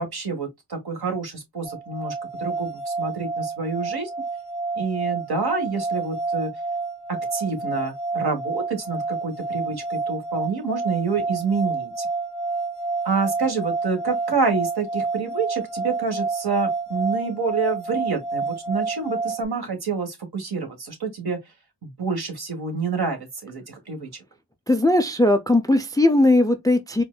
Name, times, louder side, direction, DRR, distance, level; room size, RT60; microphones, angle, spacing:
voice 1, 0.0-2.1 2.4-4.1 4.8-6.5 7.3-12.1 13.0-21.4 21.8-24.1, right 4 dB, 60° right, 1.3 m, -27 dB
sound 1, 1.6-19.4, right 3 dB, 65° left, 0.7 m, -29 dB
voice 2, 24.7-27.0, left 1 dB, 10° left, 0.4 m, -18 dB
4.3 x 2.4 x 2.2 m
wide cardioid pair, 50°, 43 cm